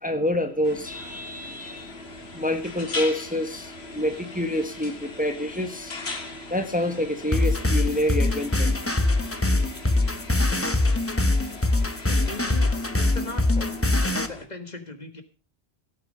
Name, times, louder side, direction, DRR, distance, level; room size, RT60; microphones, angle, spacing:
voice 1, 0.0-1.9 2.3-5.9 6.5-8.7, left 1 dB, 10° right, 1.4 m, -27 dB
sound 1, 0.6-14.5, left 3 dB, 70° left, 2.2 m, -39 dB
sound 2, 7.3-14.3, left 2 dB, 15° left, 1.0 m, -23 dB
voice 2, 12.1-13.8 14.1-15.2, left 3 dB, 40° left, 1.7 m, -39 dB
16.0 x 9.1 x 5.2 m
omnidirectional pair, 1.1 m